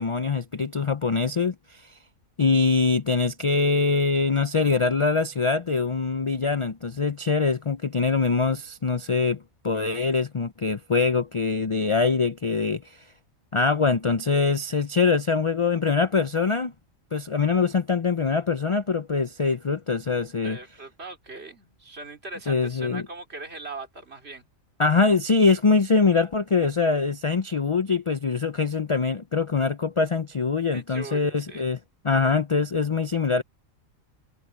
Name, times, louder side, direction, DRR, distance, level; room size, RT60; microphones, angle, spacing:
voice 1, 0.0-2.0 2.4-13.0 13.5-16.7 17.1-20.6 22.5-23.1 24.8-31.8 32.0-33.4, left 4 dB, 45° left, 0.4 m, -23 dB
voice 2, 20.4-24.4 30.7-31.6, right 3 dB, 50° right, 3.1 m, -40 dB
omnidirectional pair, 1.4 m